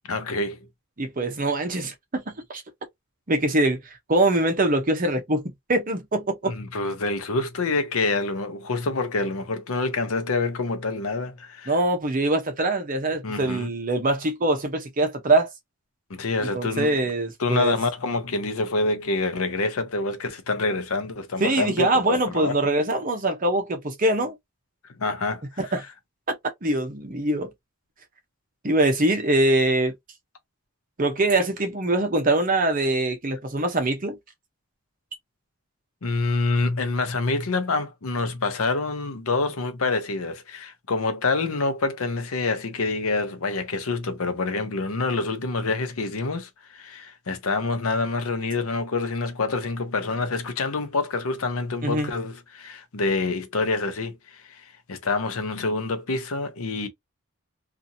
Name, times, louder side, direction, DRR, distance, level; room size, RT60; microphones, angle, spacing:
voice 1, 0.1-0.6 6.4-11.8 13.2-13.7 16.1-17.0 17.4-22.6 25.0-25.7 36.0-56.9, left 3 dB, 85° left, 0.7 m, -27 dB
voice 2, 1.0-2.6 3.3-3.8 4.1-5.4 5.7-6.5 11.7-15.5 16.5-17.8 21.4-24.4 25.6-25.8 26.3-26.4 26.6-27.5 28.6-29.9 31.0-34.2 51.8-52.1, right 2 dB, 40° right, 0.7 m, -23 dB
2.7 x 2.5 x 2.6 m
head